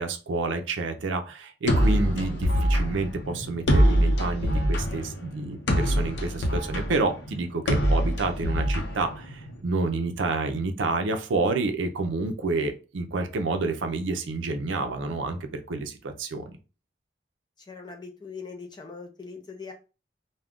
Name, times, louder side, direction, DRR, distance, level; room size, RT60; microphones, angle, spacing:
voice 1, 0.0-16.6, right 3 dB, 85° right, 6 dB, 0.5 m, -29 dB
sound 1, 1.7-9.6, equal, 70° left, 0.6 m, -24 dB
voice 2, 17.6-19.7, left 4 dB, 25° left, 2 dB, 0.4 m, -41 dB
2.4 x 2.2 x 3.5 m, 0.32 s
head